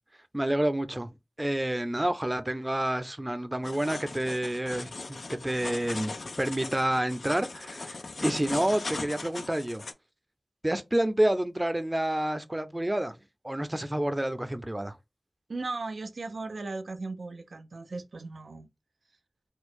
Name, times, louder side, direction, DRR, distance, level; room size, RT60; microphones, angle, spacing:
voice 1, 0.3-1.1 1.4-6.1 6.4-9.8 10.6-13.1 13.4-15.0, right 1 dB, 20° right, 0.5 m, -29 dB
sound 1, 3.6-9.9, left 3 dB, 85° left, 0.4 m, -39 dB
voice 2, 15.5-18.7, right 3 dB, 85° right, 0.4 m, -37 dB
4.5 x 2.1 x 2.4 m
wide cardioid pair, 45°, 0 cm